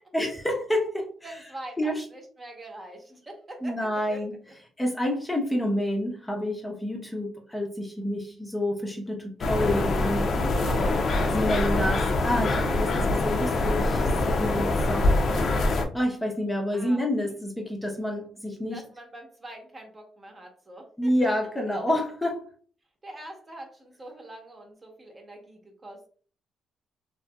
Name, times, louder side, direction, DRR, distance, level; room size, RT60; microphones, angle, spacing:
voice 1, 0.1-1.1 1.8-2.0 3.6-4.3 4.8-10.3 10.6-10.9 11.3-15.2 15.9-18.8 21.0-22.5, left 1 dB, 10° left, 0 dB, 0.6 m, -28 dB
voice 2, 1.2-4.2 10.6-11.0 16.7-17.0 18.7-21.3 23.0-26.1, right 1 dB, 30° right, 2 dB, 0.9 m, -44 dB
sound 1, 9.4-15.9, left 2 dB, 55° left, 0.5 m, -24 dB
2.7 x 2.6 x 2.2 m, 0.43 s
cardioid pair, 90°, 0 cm